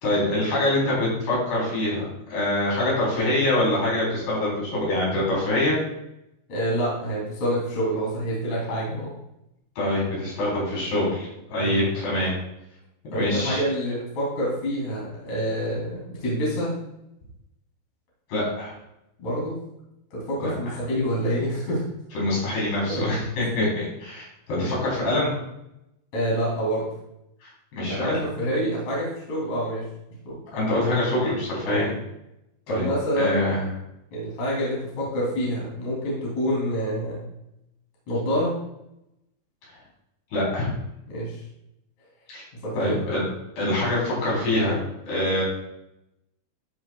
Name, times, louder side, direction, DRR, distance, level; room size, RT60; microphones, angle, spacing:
voice 1, 0.0-2.0 2.3-5.8 9.8-12.3 13.1-13.6 18.3-18.7 20.4-20.8 22.1-25.4 27.4-27.5 27.8-28.2 30.5-31.9 32.7-32.9 33.2-33.6 40.3-40.7 42.3-42.4 42.7-43.3 43.6-44.8 45.1-45.4, left 1 dB, 65° left, -6 dB, 5.7 m, -24 dB
voice 2, 6.5-9.1 11.6-11.8 13.1-16.7 19.2-19.6 20.1-21.8 22.9-23.1 26.1-26.8 27.9-29.8 30.2-30.4 31.6-31.9 32.7-33.4 34.1-37.2 38.1-38.5 41.1-41.4 42.5-43.0, equal, 45° left, -5 dB, 4.2 m, -27 dB
13.5 x 7.1 x 2.4 m, 0.85 s
omnidirectional pair, 5.0 m